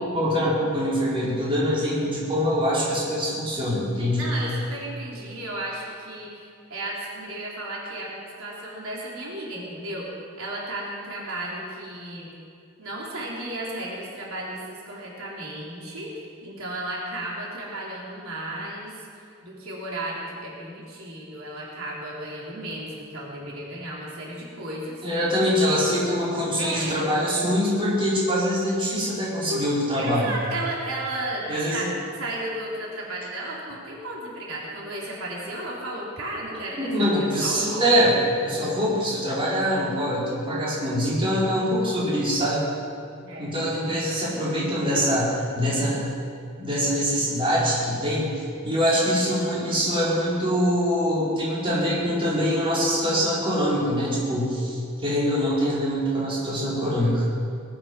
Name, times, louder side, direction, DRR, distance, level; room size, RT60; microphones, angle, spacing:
voice 1, 0.1-4.2 25.0-30.3 31.5-31.8 36.8-38.1 38.4-42.7 43.4-46.0 46.6-57.2, equal, 25° right, -7 dB, 4.4 m, -24 dB
voice 2, 4.1-6.4 6.7-10.1 10.4-12.3 12.8-25.1 26.6-27.0 29.5-29.6 29.9-31.9 32.2-37.9 43.2-43.5, right 1 dB, 85° right, -4 dB, 3.9 m, -34 dB
20.0 x 12.0 x 6.1 m, 2.4 s
head